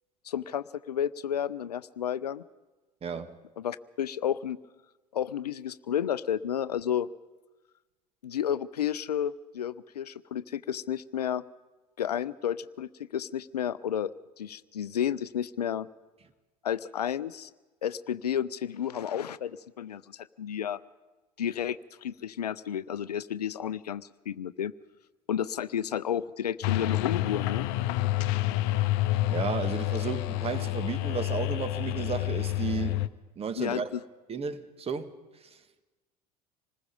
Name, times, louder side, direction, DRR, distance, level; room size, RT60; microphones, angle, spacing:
voice 1, 0.2-2.4 3.6-4.6 5.1-7.1 8.2-11.4 12.0-15.9 16.6-17.5 17.8-20.8 21.4-24.7 25.3-27.7 33.6-34.0, left 9 dB, 75° left, 17 dB, 0.6 m, -32 dB
voice 2, 3.0-3.4 29.3-33.1 33.3-33.9 34.3-35.2 35.4-35.6, right 6 dB, 30° right, 11 dB, 1.6 m, -33 dB
sound 1, 26.6-33.1, left 16 dB, 55° left, 0.8 m, -28 dB
26.5 x 20.0 x 5.3 m, 1.2 s
figure-of-eight pair, 65°, 20 cm